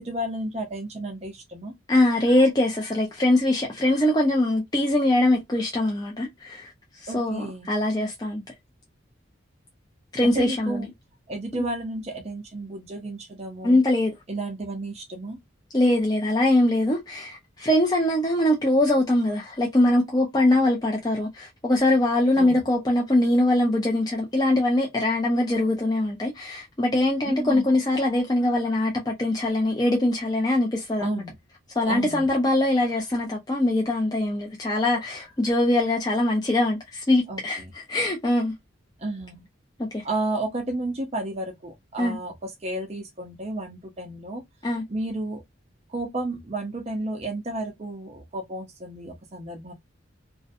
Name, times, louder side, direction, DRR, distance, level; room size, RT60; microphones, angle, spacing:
voice 1, 0.0-1.7 7.1-7.7 10.2-10.9 11.3-13.8 14.3-15.4 22.4-22.6 27.2-27.7 31.0-31.3 31.9-32.2 37.3-37.7 39.0-39.5 40.0-44.4 44.9-45.4 45.9-49.7, right 1 dB, 35° right, 0.5 m, -32 dB
voice 2, 1.9-8.4 10.1-10.9 11.5-11.6 13.6-14.1 15.7-31.1 31.7-38.5 39.8-40.0 42.0-42.2 44.6-44.8, left 1 dB, 20° left, 0.4 m, -22 dB
2.5 x 2.1 x 2.5 m
head